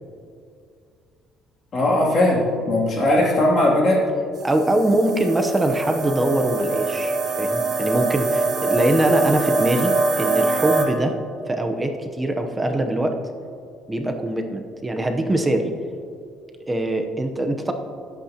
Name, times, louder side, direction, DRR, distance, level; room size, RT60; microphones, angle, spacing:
voice 1, 1.7-4.0, left 1 dB, 40° left, -3 dB, 2.6 m, -19 dB
voice 2, 4.4-11.1 11.5-13.1 13.9-15.7 16.7-17.7, right 1 dB, 15° right, 4 dB, 0.8 m, -22 dB
sound 1, 4.4-10.8, right 3 dB, 50° right, 1.9 m, -23 dB
20.0 x 8.4 x 2.9 m, 2.4 s
cardioid pair, 140°, 0 cm